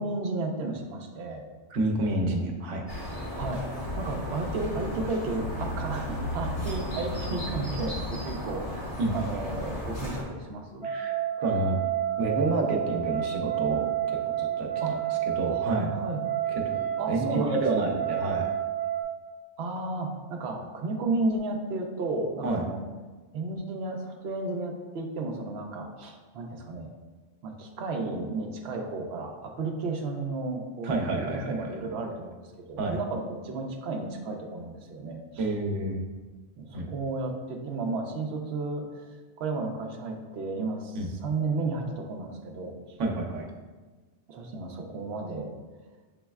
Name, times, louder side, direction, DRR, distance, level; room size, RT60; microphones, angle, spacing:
voice 1, 0.0-1.4 3.4-3.7 4.0-10.9 14.8-15.0 15.4-16.2 17.0-17.9 19.6-22.8 23.3-26.9 27.4-32.4 32.7-35.5 36.6-43.0 44.3-45.5, right 3 dB, 65° right, 2 dB, 0.8 m, -33 dB
voice 2, 1.7-2.9 9.0-9.1 10.8-11.8 12.2-14.9 15.3-15.9 16.6-18.5 22.4-22.6 30.8-31.7 32.8-33.0 35.4-36.0 36.7-36.9 40.9-41.1 43.0-43.5, right 2 dB, 85° right, 1 dB, 1.0 m, -29 dB
sound 1, 2.9-10.2, left 1 dB, 45° left, 1.4 m, -34 dB
sound 2, 10.8-19.0, right 11 dB, 70° left, 1.9 m, -30 dB
6.9 x 3.1 x 2.3 m, 1.3 s
omnidirectional pair, 1.2 m